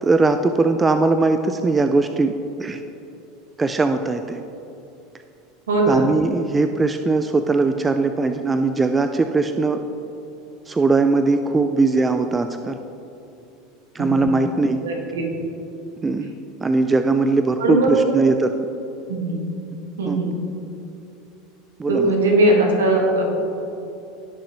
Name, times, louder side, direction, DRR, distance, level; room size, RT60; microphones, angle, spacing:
voice 1, 0.0-2.3 2.6-2.8 3.6-4.4 5.9-9.8 10.7-12.8 13.9-14.8 16.0-16.3 16.6-18.5 20.1-20.2 21.8-22.1, right 3 dB, 20° right, 8 dB, 0.5 m, -20 dB
voice 2, 5.7-6.0 14.0-14.3 14.8-15.2 17.6-18.2 19.1-19.4 20.0-20.3 21.9-23.2, right 2 dB, 80° right, 0 dB, 1.8 m, -19 dB
17.5 x 6.4 x 3.2 m, 2.8 s
hypercardioid pair, 85°, 0 cm